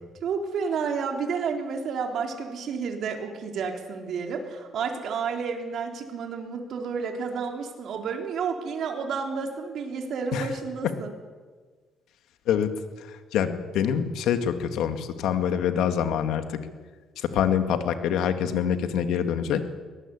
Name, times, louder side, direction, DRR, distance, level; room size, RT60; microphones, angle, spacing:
voice 1, 0.2-11.1, right 5 dB, 60° right, 3 dB, 3.8 m, -31 dB
voice 2, 13.0-16.6 17.2-19.8, left 8 dB, 85° left, 8 dB, 2.0 m, -25 dB
23.0 x 19.0 x 8.6 m, 1.4 s
cardioid pair, 125°, 0 cm